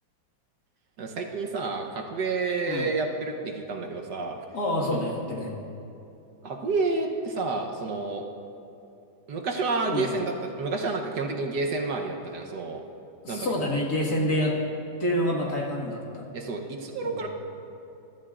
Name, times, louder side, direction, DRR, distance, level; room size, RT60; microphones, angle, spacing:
voice 1, 1.0-4.4 4.9-5.1 6.4-8.2 9.3-12.8 13.3-13.5 16.3-17.3, right 3 dB, 65° right, 2 dB, 1.4 m, -29 dB
voice 2, 4.5-5.5 9.9-10.1 13.2-14.5 15.0-16.2 17.0-17.2, left 1 dB, 55° left, -3 dB, 2.3 m, -27 dB
22.5 x 13.0 x 2.5 m, 2.7 s
omnidirectional pair, 2.1 m